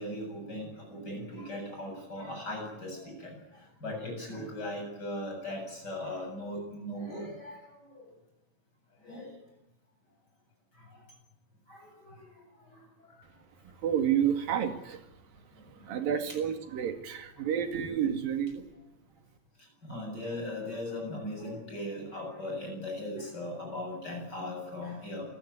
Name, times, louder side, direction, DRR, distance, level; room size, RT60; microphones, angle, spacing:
voice 1, 0.0-3.3 3.8-7.6 7.9-8.1 9.0-9.3 11.7-12.2 19.8-25.4, left 1 dB, 20° left, 2 dB, 8.2 m, -38 dB
voice 2, 13.8-15.0 15.8-18.6, right 9 dB, 55° right, 7 dB, 3.6 m, -30 dB
28.0 x 16.0 x 9.7 m, 0.95 s
omnidirectional pair, 5.1 m